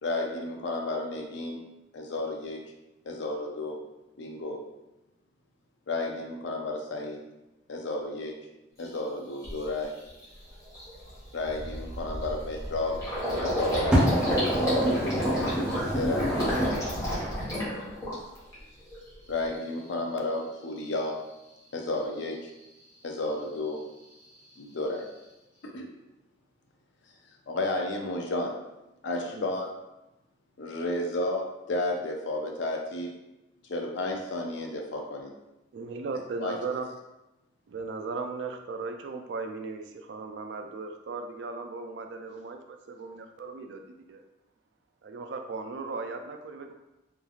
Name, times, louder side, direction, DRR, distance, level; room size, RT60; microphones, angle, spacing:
voice 1, 0.0-1.6 1.9-2.6 3.1-3.8 4.2-4.6 5.9-7.2 7.7-8.3 8.8-9.9 11.3-13.0 13.4-14.0 14.5-15.3 16.0-16.3 19.3-21.2 21.7-22.4 23.0-23.8 24.6-25.0 25.6-25.9 27.5-28.5 29.0-29.7 30.6-33.1 33.7-35.3 36.4-36.6, left 2 dB, 70° left, 1 dB, 0.5 m, -32 dB
Gurgling, 8.8-8.9 9.4-9.7 10.1-10.2 10.5-18.5 18.9-19.5, equal, 15° left, 1.1 m, -31 dB
voice 2, 13.9-16.7, equal, 5° right, -6 dB, 0.5 m, -26 dB
voice 3, 35.7-36.8 37.7-43.8 44.1-44.2 45.0-46.7, right 4 dB, 65° right, 5 dB, 0.3 m, -37 dB
3.1 x 2.4 x 2.3 m, 0.96 s
head